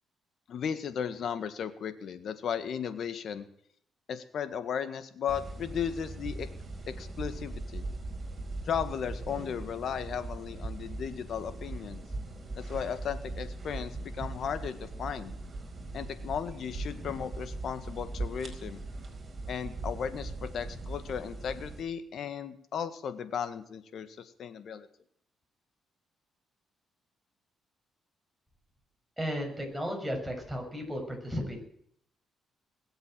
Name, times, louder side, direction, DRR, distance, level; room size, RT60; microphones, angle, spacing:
voice 1, 0.5-3.5 4.1-6.5 6.9-7.8 8.7-12.0 12.5-15.3 15.9-18.8 19.5-24.9, left 7 dB, 65° left, 11 dB, 1.7 m, -35 dB
sound 1, 5.3-21.8, right 2 dB, 30° right, 4.6 m, -40 dB
voice 2, 29.2-31.6, equal, 5° right, 1 dB, 6.2 m, -34 dB
21.5 x 8.0 x 7.7 m, 0.67 s
cardioid pair, 90°, 0 cm